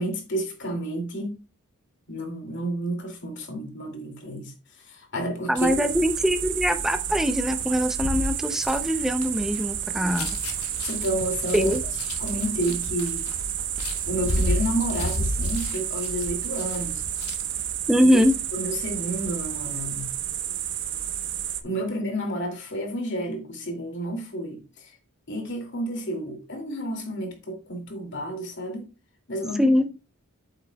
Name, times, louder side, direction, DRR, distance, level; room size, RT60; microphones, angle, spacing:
voice 1, 0.0-1.4 2.1-4.5 4.8-5.7 9.9-10.1 10.8-11.7 12.2-13.2 14.1-17.0 18.5-20.2 21.6-24.9 25.3-28.9 29.3-29.9, right 1 dB, 55° left, 2.5 m, -30 dB
voice 2, 5.5-10.4 11.5-11.8 17.9-18.3 29.6-29.9, equal, ahead, 0.5 m, -22 dB
sound 1, 5.6-21.6, right 10 dB, 55° right, 0.8 m, -31 dB
sound 2, 7.5-17.6 18.0-18.3, left 1 dB, 85° left, 1.4 m, -32 dB
8.5 x 7.5 x 2.3 m
head